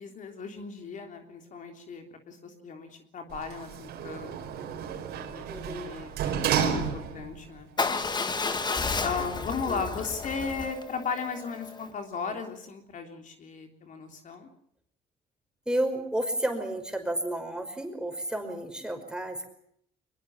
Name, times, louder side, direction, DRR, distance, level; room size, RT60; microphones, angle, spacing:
voice 1, 0.0-4.6 5.3-7.7 9.0-14.5, left 5 dB, 50° left, 4 dB, 3.4 m, -36 dB
Sliding door, 3.3-7.4 7.9-8.0, right 8 dB, 75° right, 4.8 m, -31 dB
voice 2, 5.5-6.0 9.7-9.9 15.7-19.5, right 1 dB, 5° right, 6 dB, 5.5 m, -32 dB
Motorcycle / Engine starting / Idling, 7.8-11.9, left 4 dB, 25° left, 1.9 m, -32 dB
23.5 x 22.0 x 7.2 m, 0.70 s
cardioid pair, 110°, 17 cm